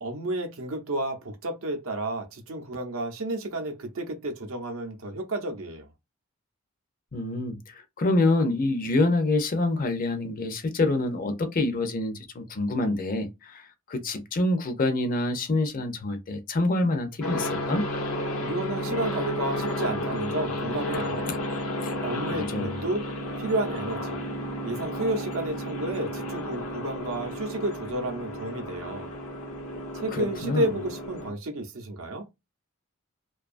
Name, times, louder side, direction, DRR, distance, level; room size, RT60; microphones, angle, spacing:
voice 1, 0.0-5.9 18.4-21.3 22.0-23.0 23.4-24.2 24.6-29.1 29.9-32.2, right 1 dB, 70° right, 0.6 m, -31 dB
voice 2, 7.1-17.9 21.8-21.9 22.3-22.8 30.1-30.7, left 2 dB, 40° left, 0.5 m, -26 dB
sound 1, 17.2-31.3, left 1 dB, 85° left, 0.7 m, -32 dB
2.5 x 2.3 x 2.4 m
head